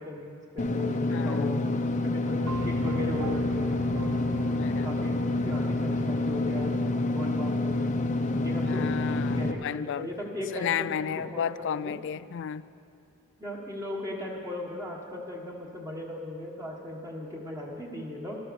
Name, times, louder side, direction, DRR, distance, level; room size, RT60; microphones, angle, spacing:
voice 1, 0.0-1.5 2.0-3.8 4.8-6.7 7.0-7.9 8.4-8.8 9.3-11.9 13.4-18.4, left 1 dB, 15° right, -2 dB, 1.4 m, -37 dB
Engine / Mechanisms, 0.6-9.5, left 2 dB, 35° left, 0.7 m, -28 dB
voice 2, 1.1-1.6 4.5-5.1 8.6-10.1 10.5-12.6, left 8 dB, 55° left, 17 dB, 0.3 m, -33 dB
sound 1, 2.5-6.7, right 4 dB, 85° right, 0.7 m, -41 dB
13.0 x 12.5 x 6.9 m, 2.6 s
head